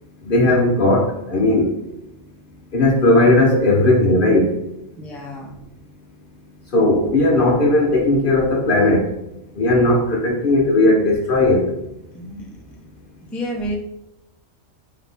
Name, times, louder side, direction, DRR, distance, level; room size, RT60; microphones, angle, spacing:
voice 1, 0.3-1.7 2.7-4.5 6.7-9.0 9.6-11.7, left 2 dB, 55° left, -1 dB, 0.7 m, -16 dB
voice 2, 5.0-5.5 12.1-12.5 13.3-13.7, equal, ahead, -1 dB, 0.4 m, -29 dB
4.0 x 2.8 x 3.4 m, 0.88 s
omnidirectional pair, 1.3 m